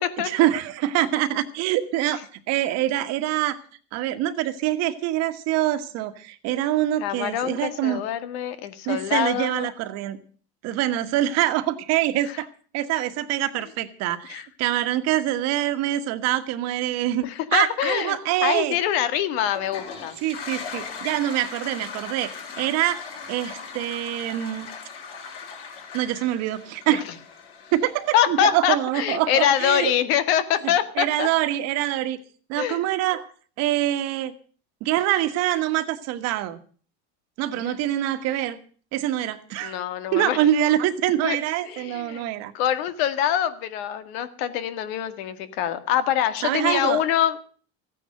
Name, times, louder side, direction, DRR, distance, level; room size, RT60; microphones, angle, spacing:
voice 1, 0.2-3.6 3.9-8.0 8.8-10.2 10.6-12.5 12.7-18.8 20.2-23.0 23.3-24.7 25.9-27.0 27.7-29.9 30.6-32.2 32.5-33.3 33.6-34.3 34.8-36.6 37.4-38.6 38.9-39.8 40.1-42.5 46.4-47.0, right 13 dB, 55° right, 10 dB, 1.5 m, -25 dB
voice 2, 7.0-9.7 14.3-14.5 17.2-20.2 26.9-27.0 28.1-31.3 32.6-32.8 37.6-37.8 39.6-40.4 41.2-41.4 41.6-42.3 42.5-47.4, left 10 dB, 80° left, 12 dB, 1.9 m, -24 dB
Toilet flush, 19.5-28.4, left 6 dB, 50° left, 5.8 m, -39 dB
15.0 x 9.8 x 7.6 m, 0.43 s
cardioid pair, 155°, 31 cm